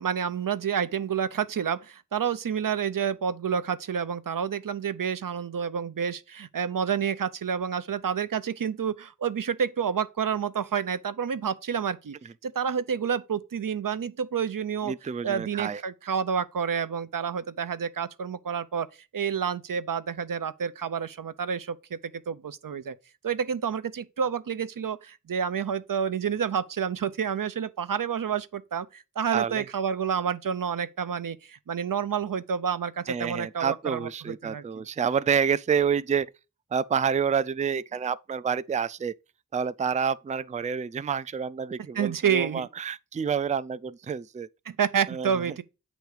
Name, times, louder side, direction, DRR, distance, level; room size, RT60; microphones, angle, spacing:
voice 1, 0.0-12.2 12.4-14.9 15.2-18.9 19.1-22.0 22.3-22.9 23.2-34.8 41.9-42.7 44.7-45.6, right 7 dB, 80° right, 0.6 m, -29 dB
voice 2, 14.8-15.8 29.3-29.6 33.1-36.3 36.7-39.1 39.5-44.5 45.1-45.3, right 7 dB, 25° right, 0.3 m, -28 dB
8.2 x 3.1 x 4.9 m
wide cardioid pair, 40°, 32 cm